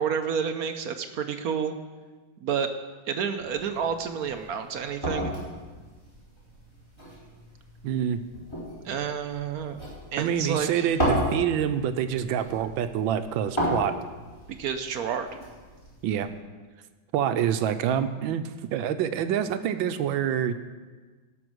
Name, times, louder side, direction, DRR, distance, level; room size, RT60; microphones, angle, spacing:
voice 1, 0.0-1.8 2.4-2.7 3.1-5.3 8.8-9.8 10.1-11.0 14.6-15.3, right 7 dB, 65° right, 8 dB, 1.0 m, -29 dB
sound 1, 3.4-16.3, equal, 15° left, 4.1 m, -34 dB
voice 2, 7.8-8.2 10.2-14.0 16.0-16.3 17.1-20.5, right 9 dB, 85° right, 10 dB, 1.5 m, -26 dB
17.0 x 6.2 x 6.2 m, 1.4 s
omnidirectional pair, 2.1 m